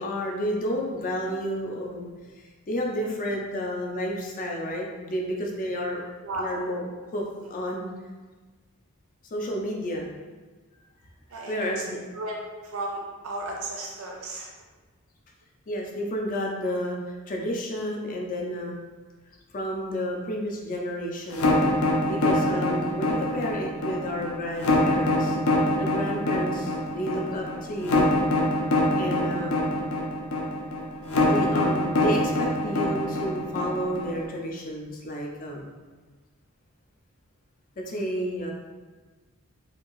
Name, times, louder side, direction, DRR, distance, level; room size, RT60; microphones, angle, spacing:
voice 1, 0.0-2.1 2.4-6.0 6.4-7.9 9.3-10.1 11.5-12.1 15.7-18.8 19.5-21.7 22.1-25.4 25.8-28.1 28.9-29.8 31.3-35.7 37.8-38.5, equal, 40° left, 0 dB, 0.4 m, -31 dB
voice 2, 6.2-6.5 11.3-11.8 12.1-14.5, right 2 dB, 70° right, -1 dB, 0.5 m, -34 dB
sound 1, 21.3-34.2, left 2 dB, 90° left, 0.5 m, -24 dB
2.8 x 2.6 x 2.9 m, 1.3 s
head